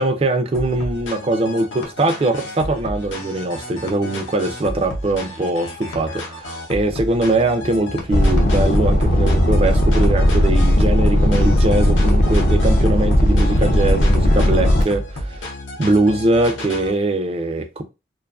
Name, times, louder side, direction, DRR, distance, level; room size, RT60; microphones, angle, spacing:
voice 1, 0.0-15.5 15.8-17.8, right 2 dB, 30° right, 0.3 m, -21 dB
sound 1, 0.5-16.9, left 1 dB, 85° left, 0.6 m, -32 dB
sound 2, 8.1-14.8, equal, 45° left, 0.4 m, -16 dB
2.5 x 2.3 x 2.3 m
head